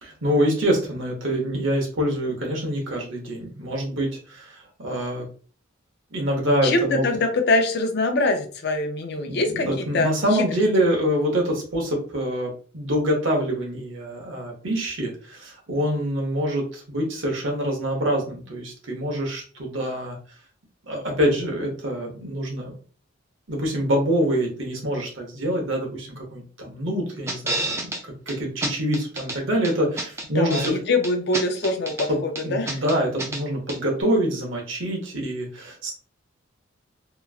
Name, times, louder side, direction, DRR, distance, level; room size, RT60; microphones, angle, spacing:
voice 1, 0.0-5.3 6.1-7.0 9.3-20.2 20.8-22.7 23.5-30.8 32.1-35.9, equal, 65° right, 1 dB, 1.0 m, -25 dB
voice 2, 6.6-10.5 30.3-32.8, left 2 dB, 55° left, 5 dB, 0.5 m, -24 dB
sound 1, 27.3-28.0 28.3-28.4 28.6-29.4 29.6-30.7 31.0-32.1 32.4-33.4 33.7-33.8, right 2 dB, 15° right, 0.4 m, -29 dB
2.9 x 2.5 x 2.4 m, 0.39 s
head